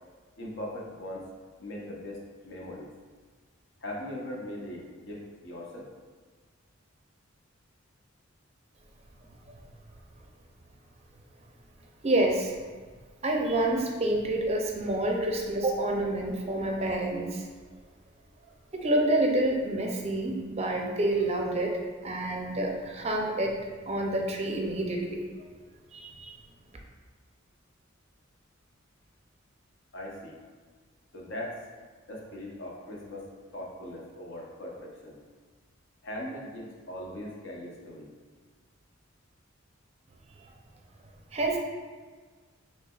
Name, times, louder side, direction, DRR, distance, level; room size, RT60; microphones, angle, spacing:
voice 1, 0.4-1.3 1.6-2.9 3.8-5.8 29.9-30.4 31.1-31.6 32.1-33.2 33.5-35.2 36.0-38.1, left 1 dB, 65° left, -3 dB, 0.9 m, -40 dB
voice 2, 12.0-12.5 13.2-17.5 18.7-23.6 23.9-25.2 25.9-26.3 41.3-41.6, right 1 dB, 30° right, 1 dB, 0.5 m, -28 dB
5.7 x 3.3 x 2.4 m, 1.5 s
head